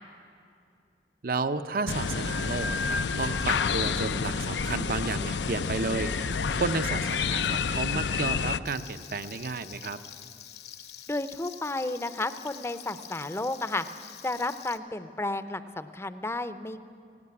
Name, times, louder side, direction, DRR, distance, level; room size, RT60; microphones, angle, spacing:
voice 1, 1.2-10.0, right 3 dB, 55° right, 11 dB, 0.8 m, -32 dB
sound 1, 1.9-8.6, left 5 dB, 80° left, 0.6 m, -29 dB
Frying (food), 8.7-14.8, left 10 dB, 65° left, 1.1 m, -46 dB
voice 2, 11.1-13.9 14.2-16.8, left 2 dB, 15° left, 12 dB, 0.6 m, -32 dB
17.5 x 17.5 x 9.7 m, 2.5 s
head